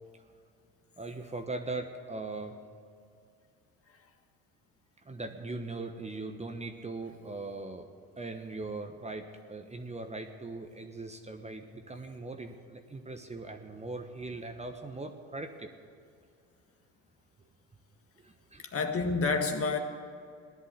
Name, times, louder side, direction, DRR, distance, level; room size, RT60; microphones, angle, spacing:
voice 1, 1.0-2.6 5.0-7.9 8.2-15.7 18.2-18.8, right 3 dB, 15° right, 1.2 m, -40 dB
voice 2, 18.7-19.8, left 4 dB, 35° left, 1.7 m, -28 dB
16.0 x 11.0 x 8.3 m
hypercardioid pair, 65°, 39 cm